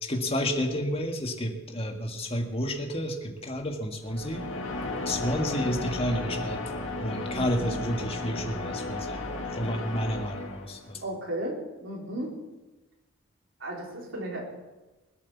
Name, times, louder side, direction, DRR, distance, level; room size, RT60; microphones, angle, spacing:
voice 1, 0.0-4.4 5.1-6.6 7.0-9.2 9.5-11.0, equal, 30° left, 3 dB, 1.8 m, -30 dB
sound 1, 4.1-10.9, left 2 dB, 75° left, 2.0 m, -34 dB
voice 2, 7.3-7.7 11.0-12.3 13.6-14.4, right 1 dB, 70° right, -2 dB, 4.4 m, -35 dB
21.0 x 8.3 x 7.2 m, 1.1 s
head